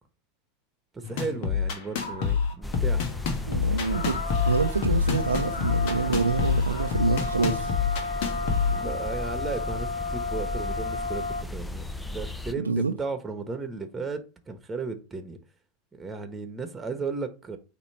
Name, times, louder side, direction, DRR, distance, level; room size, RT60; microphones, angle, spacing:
voice 1, 0.9-3.1 8.6-15.4 15.9-17.6, right 4 dB, 15° right, 1.4 m, -35 dB
sound 1, 1.0-9.0, left 6 dB, 55° left, 1.5 m, -27 dB
sound 2, 2.0-2.6 2.9-3.1 3.4-11.4, left 3 dB, 85° left, 1.1 m, -33 dB
sound 3, 2.6-12.5, left 1 dB, 5° left, 0.7 m, -35 dB
voice 2, 3.5-4.2 4.5-7.7 12.6-12.9, right 4 dB, 90° right, 0.5 m, -26 dB
8.7 x 3.0 x 4.4 m
hypercardioid pair, 85°, 0 cm